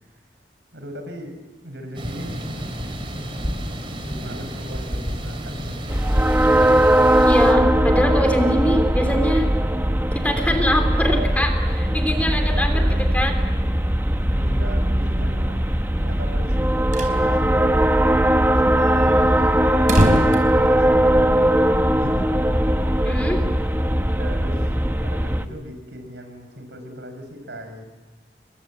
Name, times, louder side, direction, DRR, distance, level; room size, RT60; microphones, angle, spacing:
voice 1, 0.7-2.4 2.8-2.9 4.0-6.2 12.6-13.2 14.3-17.9 18.5-19.9 20.3-21.0 21.9-22.5 24.2-27.9, equal, 90° right, 6 dB, 5.8 m, -37 dB
sound 1, 1.9-7.5, equal, 30° right, 4.2 m, -30 dB
sound 2, 5.9-25.5, right 1 dB, 10° right, 1.1 m, -19 dB
voice 2, 7.2-9.5 10.1-12.8 13.1-13.3 23.0-23.4, equal, 10° left, 5 dB, 3.4 m, -23 dB
sound 3, 16.7-17.2 17.5-17.6 17.8-17.9 18.4-21.4, equal, 45° right, 4.5 m, -25 dB
29.0 x 22.0 x 8.6 m, 1.3 s
head